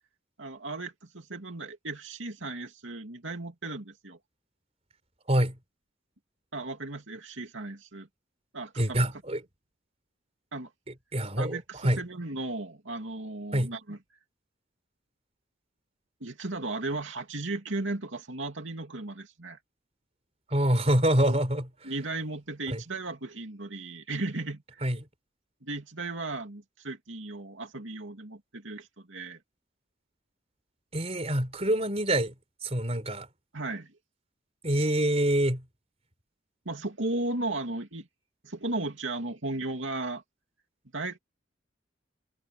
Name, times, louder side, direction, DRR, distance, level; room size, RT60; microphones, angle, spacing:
voice 1, 0.4-4.2 6.5-8.1 8.5-9.0 10.5-10.7 11.4-14.0 16.2-19.6 21.2-21.4 21.8-24.8 25.6-29.4 33.5-34.0 36.6-38.1 38.4-40.2 40.9-41.2, right 2 dB, 70° right, 2.8 m, -35 dB
voice 2, 8.8-9.4 11.1-12.0 13.5-13.7 20.5-21.6 22.7-22.8 24.8-25.0 30.9-32.3 32.6-33.3 34.6-35.6, right 1 dB, 30° right, 4.3 m, -25 dB
head